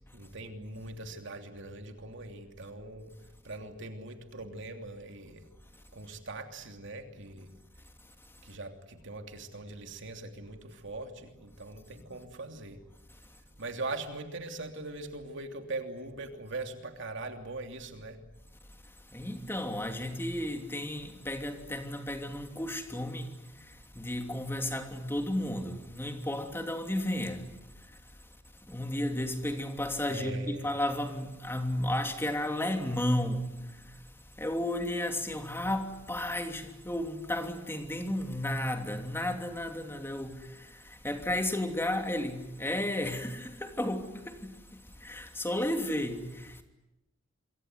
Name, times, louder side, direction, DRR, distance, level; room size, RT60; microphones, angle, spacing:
voice 1, 0.1-3.1 3.4-5.5 5.9-7.5 8.4-12.8 13.6-18.2 30.1-30.7, right 2 dB, 65° right, 3.0 m, -41 dB
voice 2, 19.1-23.3 23.9-27.5 28.7-33.5 34.4-40.7 41.0-44.5 45.0-46.6, left 1 dB, 10° left, 2.9 m, -33 dB
27.0 x 23.0 x 9.6 m
head